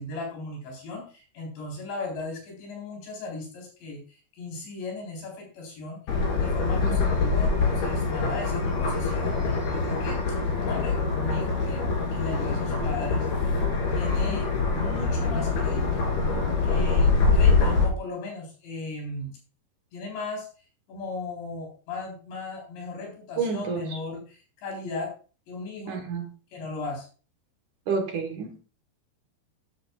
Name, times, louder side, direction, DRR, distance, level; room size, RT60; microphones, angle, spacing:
voice 1, 0.0-10.2 10.7-11.9 12.1-13.3 13.9-14.5 14.7-16.1 16.6-19.4 19.9-20.5 20.9-25.1 25.5-26.0 26.5-27.1, left 3 dB, 85° left, 0 dB, 6.4 m, -37 dB
sound 1, 6.1-17.9, left 4 dB, 65° left, 5.1 m, -24 dB
voice 2, 23.4-23.8 25.9-26.3 27.9-28.6, right 5 dB, 60° right, 4 dB, 2.3 m, -29 dB
13.0 x 12.5 x 2.4 m, 0.37 s
omnidirectional pair, 4.9 m